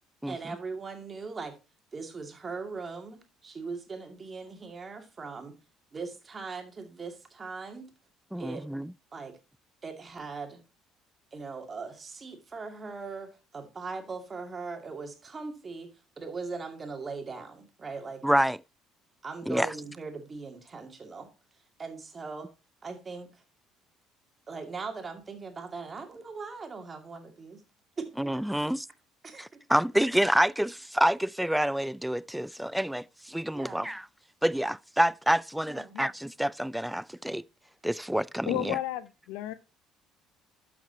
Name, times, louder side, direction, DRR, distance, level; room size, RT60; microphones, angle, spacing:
voice 1, 0.3-1.6 1.9-5.6 5.9-7.9 8.4-8.6 9.1-9.4 9.8-10.6 11.3-18.3 19.2-21.3 21.8-22.5 22.8-23.4 24.5-27.6 28.0-28.1 29.2-29.6 33.5-33.9 35.7-36.0, right 4 dB, 35° right, 2.4 m, -40 dB
voice 2, 8.3-8.9 18.2-18.6 19.5-19.7 28.2-28.9 29.4-34.0 34.4-37.4 37.8-38.8, right 1 dB, 5° right, 0.3 m, -27 dB
voice 3, 38.5-39.5, left 14 dB, 75° left, 0.6 m, -33 dB
12.5 x 6.0 x 2.8 m
hypercardioid pair, 65°, 0 cm